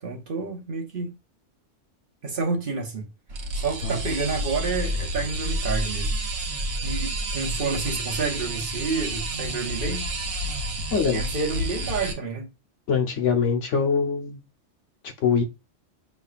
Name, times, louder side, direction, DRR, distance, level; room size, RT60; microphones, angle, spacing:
voice 1, 0.0-1.1 2.2-3.1 3.5-6.1 6.8-10.0 11.1-12.5, right 4 dB, 50° right, 1.0 m, -29 dB
sound 1, 3.3-12.1, right 1 dB, 80° right, 1.3 m, -29 dB
voice 2, 10.9-11.2 12.9-14.4 15.2-15.4, left 5 dB, 75° left, 1.2 m, -23 dB
5.3 x 3.3 x 2.4 m
omnidirectional pair, 1.3 m